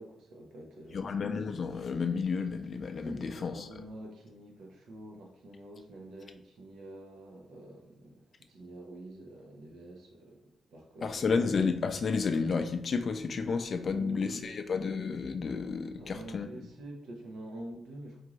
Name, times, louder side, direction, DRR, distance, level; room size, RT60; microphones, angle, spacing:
voice 1, 0.0-1.2 3.0-11.5 13.9-14.7 16.0-18.2, right 1 dB, 85° right, 0 dB, 0.9 m, -47 dB
voice 2, 0.9-3.7 11.0-16.5, left 5 dB, 35° left, 7 dB, 0.3 m, -31 dB
4.5 x 2.5 x 3.1 m, 0.82 s
wide cardioid pair, 175°, 0 cm